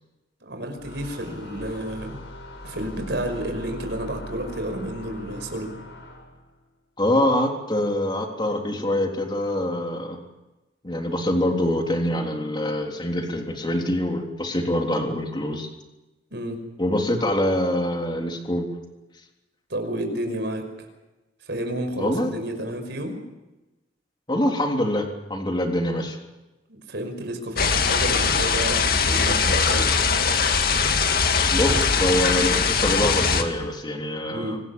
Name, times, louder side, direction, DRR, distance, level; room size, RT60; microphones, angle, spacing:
voice 1, 0.4-2.2 2.6-5.7 16.3-16.6 19.7-20.6 21.4-23.2 26.7-29.9 34.3-34.6, right 1 dB, 65° right, 5 dB, 5.5 m, -31 dB
sound 1, 0.8-6.5, equal, 75° left, 6.5 m, -40 dB
voice 2, 7.0-10.2 10.8-15.7 16.8-18.6 22.0-22.3 24.3-26.2 31.5-34.6, left 1 dB, 25° left, 2 dB, 3.5 m, -25 dB
sound 2, 27.6-33.4, left 5 dB, 55° left, 2.1 m, -21 dB
26.0 x 19.5 x 7.3 m, 1.0 s
head